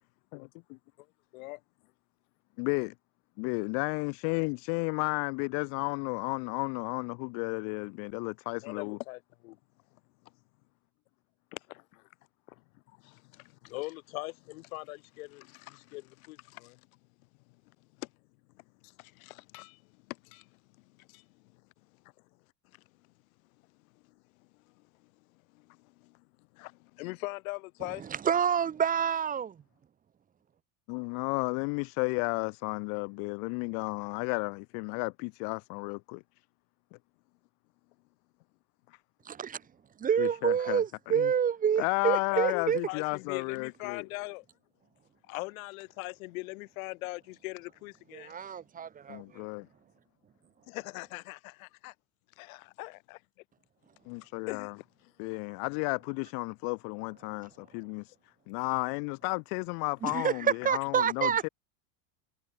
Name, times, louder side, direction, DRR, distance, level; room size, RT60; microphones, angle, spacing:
voice 1, 0.3-0.8 2.6-2.9 3.4-9.0 30.9-36.2 40.2-41.3 41.8-44.1 49.1-49.7 54.1-54.8 55.2-58.1 58.5-61.5, left 40 dB or more, 50° left, 1.8 m, -33 dB
voice 2, 8.6-9.6 13.0-16.8 18.0-18.1 18.8-19.8 20.1-20.5 21.0-21.2 25.5-26.2 26.5-28.1 42.3-44.4 45.3-48.5 50.7-51.9 52.4-53.2 54.5-54.7, left 23 dB, 65° left, 4.4 m, -41 dB
voice 3, 28.2-29.6 39.3-39.6 40.0-42.9 48.1-49.4 60.0-61.5, right 8 dB, 20° right, 2.3 m, -28 dB
supercardioid pair, 170°, 44 cm